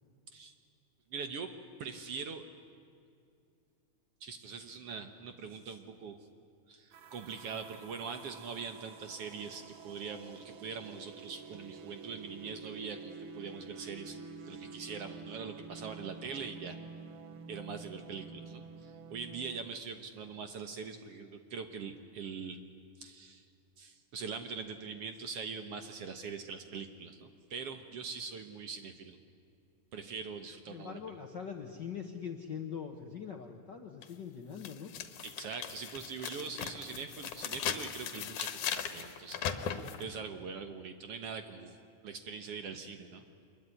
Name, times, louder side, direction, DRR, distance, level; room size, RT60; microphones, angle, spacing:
voice 1, 1.1-1.5 1.8-2.4 4.2-6.2 6.7-16.8 17.5-22.6 23.0-23.5 23.8-29.2 29.9-31.0 35.2-41.8 42.0-43.4, right 5 dB, 60° right, 8 dB, 1.8 m, -43 dB
sound 1, 6.9-19.7, right 5 dB, 80° right, 2.8 m, -49 dB
voice 2, 30.7-34.9, left 7 dB, 55° left, 4 dB, 1.2 m, -42 dB
sound 2, 34.0-34.1 34.6-40.0, left 8 dB, 75° left, 2.7 m, -38 dB
25.0 x 21.5 x 9.9 m, 2.5 s
omnidirectional pair, 3.6 m